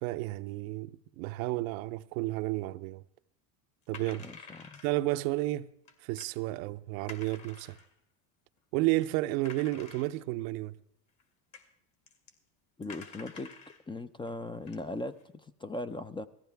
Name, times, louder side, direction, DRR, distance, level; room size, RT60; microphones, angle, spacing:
voice 1, 0.0-3.0 3.9-4.2 4.8-5.7 6.0-7.8 8.7-10.8, right 18 dB, 80° right, 0.7 m, -32 dB
sound 1, 3.9-5.0 5.8-6.3 7.1-7.9 8.6-8.7 9.0-9.1 9.4-10.4 11.2-11.3 11.5-11.7 12.1-12.3 12.8-13.8 14.3-14.4 14.7-15.2, left 5 dB, 45° left, 2.4 m, -50 dB
voice 2, 4.2-4.8 12.8-13.5 13.9-16.3, left 2 dB, 10° left, 0.4 m, -39 dB
17.5 x 14.5 x 3.4 m
supercardioid pair, 110°, 41 cm